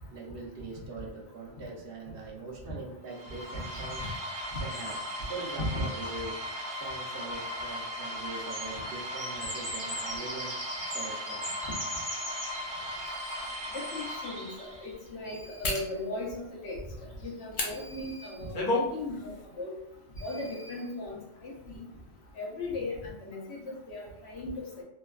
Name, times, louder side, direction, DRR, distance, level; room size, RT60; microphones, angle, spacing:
voice 1, 0.0-4.1 4.6-5.0 5.3-6.4 6.8-11.5, right 3 dB, 60° right, -1 dB, 0.8 m, -42 dB
sound 1, 3.1-14.9, equal, 85° right, 1.0 m, -38 dB
sound 2, 3.6-6.5 7.4-7.5 7.7-14.9 16.7-16.8 17.2-17.4, equal, 20° right, 0.6 m, -42 dB
sound 3, 12.8-12.9 13.5-13.7 15.6-15.9 17.5-17.7 18.3-18.9 19.3-19.4, left 2 dB, 55° left, 0.7 m, -29 dB
voice 2, 12.9-13.4 13.7-16.8 17.2-19.7 20.2-21.8 22.4-24.8, left 2 dB, 75° left, -3 dB, 1.1 m, -38 dB
3.1 x 2.1 x 2.3 m, 0.80 s
omnidirectional pair, 1.1 m